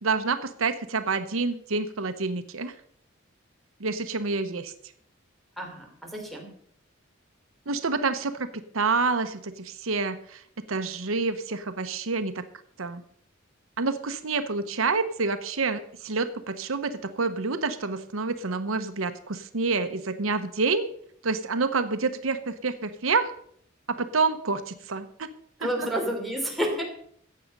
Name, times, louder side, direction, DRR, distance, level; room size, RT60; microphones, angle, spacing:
voice 1, 0.0-2.7 3.8-4.7 7.7-8.5 8.7-10.4 10.7-12.4 12.8-13.0 13.8-20.9 21.2-23.3 23.9-25.3 25.8-25.9, right 4 dB, 85° right, 9 dB, 1.0 m, -28 dB
voice 2, 5.6-6.5 25.6-26.8, equal, ahead, 1 dB, 3.2 m, -30 dB
15.0 x 8.6 x 5.4 m, 0.63 s
head